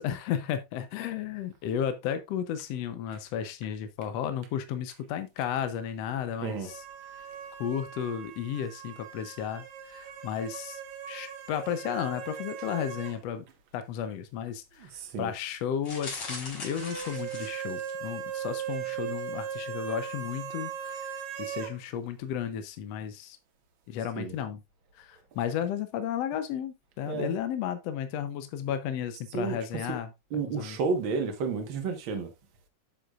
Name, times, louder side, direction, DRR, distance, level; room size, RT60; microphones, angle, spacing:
voice 1, 0.0-6.8 7.2-7.3 7.6-10.8 11.1-13.5 13.7-14.9 15.2-23.4 23.9-24.6 25.0-30.1 30.5-30.8, left 9 dB, 70° left, 1.8 m, -33 dB
sound 1, 6.6-13.2 13.5-13.6 16.6-21.8, right 8 dB, 80° right, 2.6 m, -38 dB
voice 2, 14.8-15.3 24.2-24.4 27.0-27.4 29.3-30.0 30.3-32.3, right 4 dB, 50° right, 1.8 m, -31 dB
sound 2, 15.8-18.1 18.6-18.9 19.2-19.3, left 3 dB, 45° left, 3.8 m, -40 dB
9.4 x 7.1 x 2.4 m
omnidirectional pair, 3.3 m